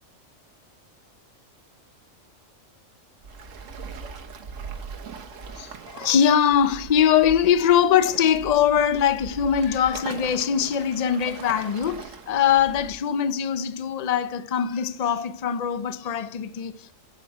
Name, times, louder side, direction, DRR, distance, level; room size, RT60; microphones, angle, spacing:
Waves surf, 3.2-12.9, right 5 dB, 80° right, 1.4 m, -40 dB
voice 1, 5.5-16.9, left 8 dB, 50° left, 0.5 m, -22 dB
8.2 x 8.1 x 4.6 m
omnidirectional pair, 1.3 m